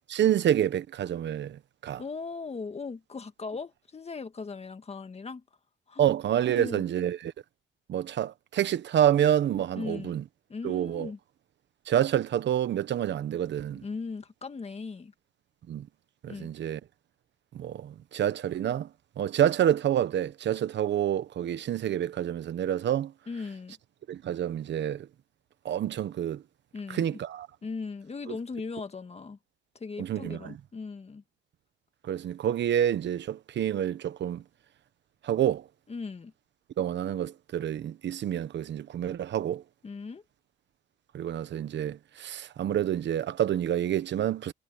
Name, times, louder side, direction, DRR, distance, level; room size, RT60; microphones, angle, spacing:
voice 1, 0.1-2.0 6.0-7.3 7.9-10.2 10.6-11.1 11.9-13.8 15.7-15.9 16.2-16.8 17.5-18.9 19.2-23.1 24.1-25.1 25.6-26.4 26.9-27.5 28.3-28.4 30.0-30.6 32.1-34.4 35.2-35.6 36.8-39.6 41.1-44.5, right 10 dB, 65° right, 1.1 m, -28 dB
voice 2, 2.0-5.4 5.9-6.1 6.4-6.8 9.8-10.2 10.5-11.2 13.8-15.1 16.3-16.5 23.3-23.8 26.7-27.2 27.6-29.4 29.8-31.2 35.9-36.3 39.8-40.2, left 4 dB, 30° left, 1.9 m, -38 dB
cardioid pair, 90°, 20 cm